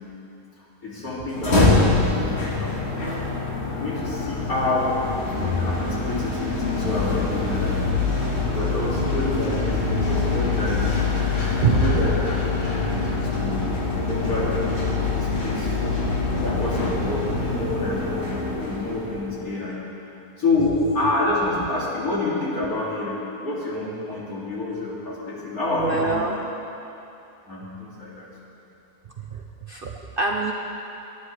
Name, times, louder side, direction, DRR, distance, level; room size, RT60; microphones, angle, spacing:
voice 1, 0.8-3.0 3.7-5.0 5.4-7.9 8.5-11.1 11.7-12.1 12.6-13.7 13.9-14.6 15.1-15.8 16.4-19.8 20.4-26.3 27.4-28.3, left 2 dB, 65° left, -8 dB, 3.0 m, -28 dB
sound 1, 1.3-19.4, left 3 dB, 40° left, 2.0 m, -24 dB
voice 2, 8.8-9.2 11.6-11.9 25.7-26.3 29.3-29.4 29.7-30.5, right 4 dB, 65° right, 1 dB, 0.5 m, -25 dB
19.0 x 10.0 x 3.3 m, 2.9 s
omnidirectional pair, 1.7 m